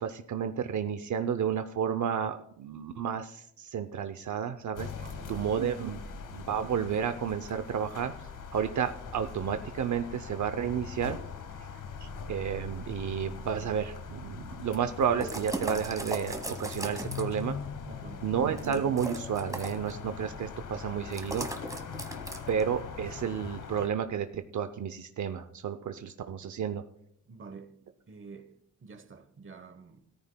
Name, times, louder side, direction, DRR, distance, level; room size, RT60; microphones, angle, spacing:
voice 1, 0.0-4.9 5.3-6.0 6.3-8.1 8.5-11.2 12.0-17.6 18.2-21.5 22.5-26.8, right 8 dB, 65° right, 0.6 m, -31 dB
sound 1, 4.8-23.9, left 6 dB, 75° left, 1.2 m, -42 dB
voice 2, 5.0-5.5 17.8-18.3 27.3-27.7 28.1-28.5 28.8-30.0, right 4 dB, 40° right, 1.0 m, -48 dB
sound 2, 15.2-17.4 18.6-19.9 21.1-22.6, right 2 dB, 10° right, 1.1 m, -37 dB
17.5 x 13.5 x 2.2 m
wide cardioid pair, 175°, 32 cm